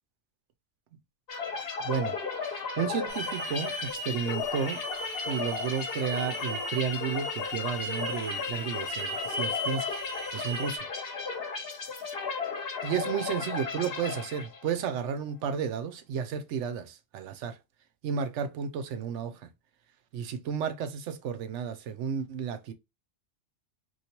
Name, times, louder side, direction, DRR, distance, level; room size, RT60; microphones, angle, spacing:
sound 1, 1.3-14.8, left 5 dB, 60° left, 1.0 m, -35 dB
voice 1, 1.8-2.2 2.4-4.8 5.3-10.0 10.3-10.9 12.8-17.6 18.0-19.5 20.1-22.7, right 7 dB, 90° right, 0.9 m, -32 dB
Hiss / Alarm, 3.1-10.8, equal, 25° left, 0.8 m, -37 dB
3.1 x 2.5 x 2.8 m
omnidirectional pair, 1.2 m